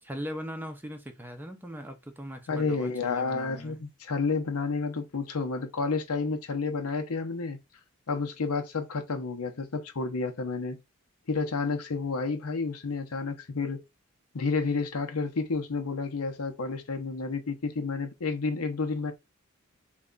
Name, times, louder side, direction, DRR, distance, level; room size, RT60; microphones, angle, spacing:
voice 1, 0.0-3.8, equal, 10° right, 0.6 m, -40 dB
voice 2, 2.5-7.6 8.1-10.8 11.3-13.8 14.3-19.1, left 4 dB, 80° left, 0.7 m, -30 dB
3.4 x 2.3 x 3.8 m
head